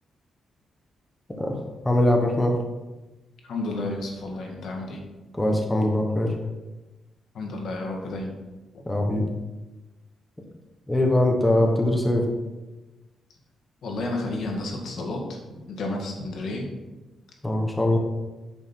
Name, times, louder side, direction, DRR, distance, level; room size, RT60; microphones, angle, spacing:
voice 1, 1.8-2.5 5.3-6.3 8.9-9.2 10.9-12.3 17.4-18.0, left 1 dB, 10° left, 1 dB, 1.1 m, -22 dB
voice 2, 3.4-5.0 7.3-8.3 13.8-16.7, left 2 dB, 60° left, 1 dB, 2.0 m, -31 dB
8.9 x 6.5 x 4.5 m, 1.1 s
wide cardioid pair, 170°, 0 cm